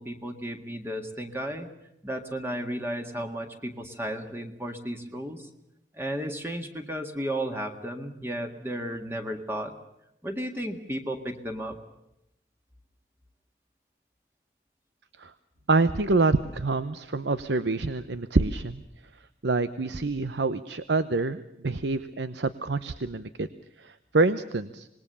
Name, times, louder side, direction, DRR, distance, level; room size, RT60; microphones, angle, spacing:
voice 1, 0.0-1.7 2.0-5.5 5.9-9.7 10.2-11.8, right 1 dB, 15° right, 5 dB, 1.7 m, -34 dB
voice 2, 15.7-18.8 19.4-23.5 23.8-24.9, right 3 dB, 85° right, 13 dB, 0.8 m, -26 dB
26.0 x 20.0 x 6.8 m, 0.86 s
head